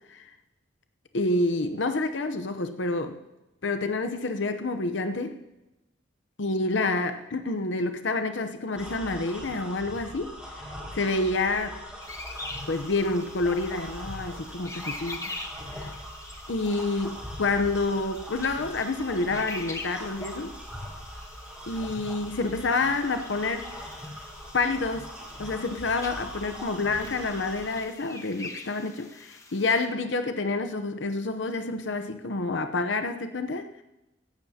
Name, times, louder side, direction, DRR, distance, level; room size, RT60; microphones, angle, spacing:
voice 1, 1.1-3.2 3.6-5.4 6.4-10.3 10.7-11.8 12.7-15.4 15.7-15.9 16.5-20.5 21.7-23.9 24.5-25.1 25.4-33.8, left 3 dB, 70° left, 8 dB, 0.8 m, -28 dB
sound 1, 8.7-27.8, equal, 5° right, 4.7 m, -41 dB
sound 2, 12.0-29.9, left 3 dB, 15° left, 1.3 m, -44 dB
17.0 x 14.0 x 2.9 m, 0.99 s
head